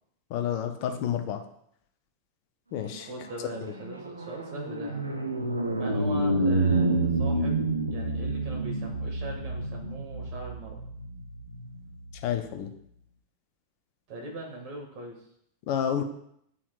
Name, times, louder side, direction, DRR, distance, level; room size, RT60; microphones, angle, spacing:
voice 1, 0.3-1.4 2.7-3.1 12.2-12.7 15.7-16.0, left 9 dB, 45° left, 6 dB, 0.7 m, -29 dB
sound 1, 2.9-12.4, right 2 dB, 80° right, 0.5 m, -29 dB
voice 2, 3.1-5.1 5.7-7.6 7.9-10.8 14.1-15.2, right 2 dB, 45° right, 0 dB, 1.9 m, -40 dB
9.4 x 4.3 x 2.5 m, 0.72 s
figure-of-eight pair, 90°, 0 cm